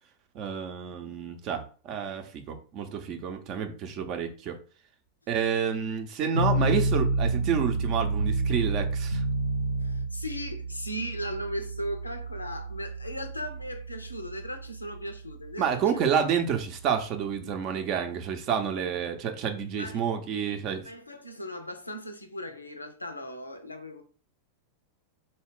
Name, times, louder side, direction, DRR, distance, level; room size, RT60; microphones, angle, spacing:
voice 1, 0.3-4.6 5.3-9.2 15.6-20.9, right 7 dB, 40° right, 0.6 m, -29 dB
sound 1, 6.3-17.5, right 2 dB, 75° right, 0.4 m, -30 dB
voice 2, 9.8-16.1 19.8-20.0 20.8-24.0, equal, 80° left, 0.5 m, -37 dB
3.8 x 2.3 x 3.6 m
figure-of-eight pair, 90°, 0 cm